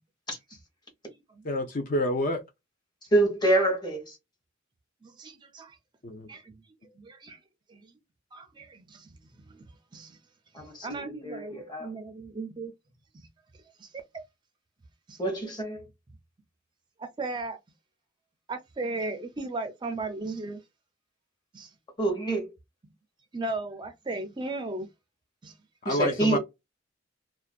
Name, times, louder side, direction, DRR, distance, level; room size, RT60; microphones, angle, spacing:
voice 1, 1.4-2.4 6.0-6.3 25.8-26.4, left 1 dB, 45° left, 0.5 m, -28 dB
voice 2, 3.1-4.2 10.5-11.9 15.2-15.8 22.0-22.5 25.8-26.4, right 2 dB, 20° left, 1.0 m, -27 dB
voice 3, 5.0-5.8 6.3-6.6 7.0-7.4 7.7-7.8 8.3-9.1 9.5-9.6 9.9-10.2 10.8-12.7 13.8-14.0 15.1-15.2 17.0-17.6 18.5-20.6 21.5-21.7 23.3-24.9 25.4-25.5, right 2 dB, 25° right, 0.4 m, -36 dB
2.5 x 2.2 x 2.4 m
head